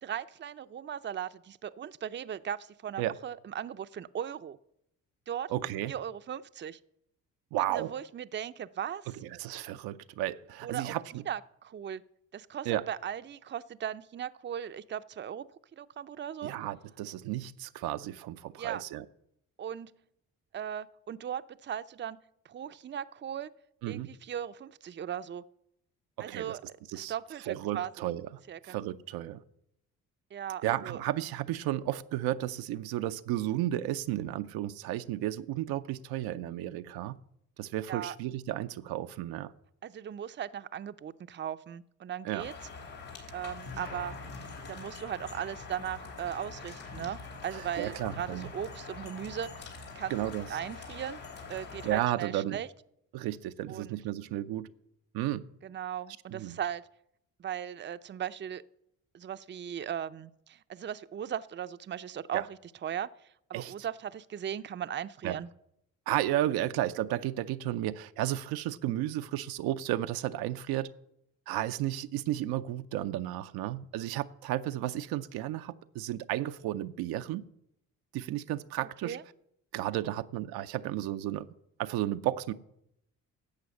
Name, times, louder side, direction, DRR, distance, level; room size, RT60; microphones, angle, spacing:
voice 1, 0.0-4.6 5.3-5.5 5.9-6.8 7.7-9.2 10.6-12.0 12.3-15.5 15.8-16.5 18.6-18.8 19.6-19.9 20.5-22.2 22.4-23.5 23.9-25.4 26.2-26.6 26.9-27.9 28.5-28.8 30.3-31.0 37.9-38.1 39.8-42.5 43.3-44.1 44.7-49.5 50.0-50.1 50.5-51.2 51.5-52.7 53.7-53.9 55.6-56.8 57.4-58.6 59.1-63.1 63.5-65.5 78.8-79.2, right 9 dB, 30° right, 0.5 m, -38 dB
voice 2, 5.5-5.9 7.5-7.9 9.2-11.0 12.7-12.8 16.4-19.0 23.8-24.1 26.2-26.6 26.9-27.1 27.5-29.4 30.6-37.2 37.6-39.5 42.2-42.5 47.5-48.5 50.1-50.4 51.8-52.6 53.1-54.7 55.1-55.4 56.3-56.6 62.3-62.4 63.5-63.7 65.2-65.4 66.1-70.9 71.5-77.4 78.1-79.2 79.7-81.5 81.8-82.6, right 13 dB, 80° right, 0.6 m, -33 dB
sound 1, 42.4-52.0, left 4 dB, 85° left, 3.4 m, -44 dB
11.5 x 7.6 x 7.1 m
supercardioid pair, 65°, 37 cm